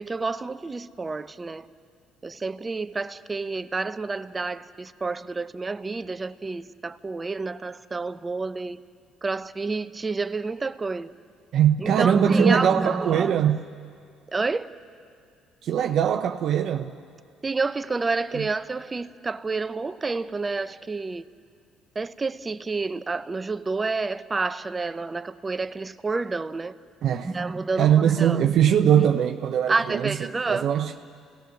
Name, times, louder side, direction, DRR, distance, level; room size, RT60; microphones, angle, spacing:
voice 1, 0.0-1.7 2.2-8.8 9.2-11.1 11.8-13.5 14.3-14.7 17.4-21.2 21.9-26.7 27.2-28.4 28.8-29.1 29.7-30.7, right 3 dB, 25° right, 0.8 m, -28 dB
voice 2, 11.5-13.6 15.6-16.9 18.3-18.5 27.0-27.3 27.8-30.9, right 10 dB, 60° right, 0.7 m, -22 dB
29.0 x 18.5 x 6.5 m
supercardioid pair, 70°, 0 cm